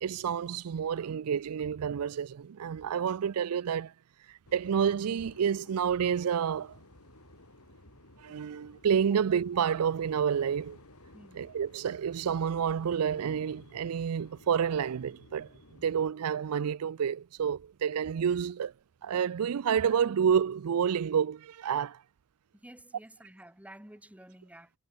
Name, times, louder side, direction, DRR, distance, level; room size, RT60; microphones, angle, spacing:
voice 1, 0.0-3.9 4.3-6.8 8.2-10.8 11.3-15.5 15.8-18.7 19.0-22.0, right 7 dB, 75° right, 0.4 m, -29 dB
sound 1, 4.5-16.1, left 1 dB, 75° left, 7.0 m, -56 dB
voice 2, 11.1-11.5 22.5-24.7, right 1 dB, 5° right, 1.8 m, -51 dB
head